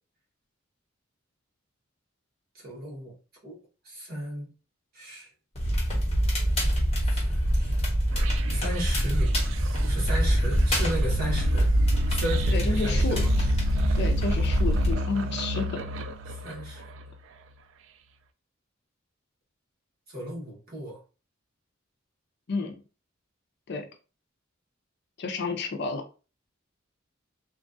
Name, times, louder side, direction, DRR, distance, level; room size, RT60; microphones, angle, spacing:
voice 1, 2.5-3.1 3.4-3.6 3.8-4.5 4.9-5.3 7.0-7.8 8.5-9.4 9.8-11.7 12.1-13.3 13.9-14.0 16.3-16.9 20.1-21.0, right 1 dB, 50° right, 1.3 m, -35 dB
Crackle, 5.6-14.9, equal, 30° left, 1.1 m, -24 dB
sound 1, 8.1-17.3, left 1 dB, 65° right, 0.3 m, -33 dB
voice 2, 12.5-13.5 13.9-15.9 22.5-22.8 23.7-23.9 25.2-26.0, left 3 dB, 55° left, 0.5 m, -31 dB
3.0 x 2.4 x 2.5 m
head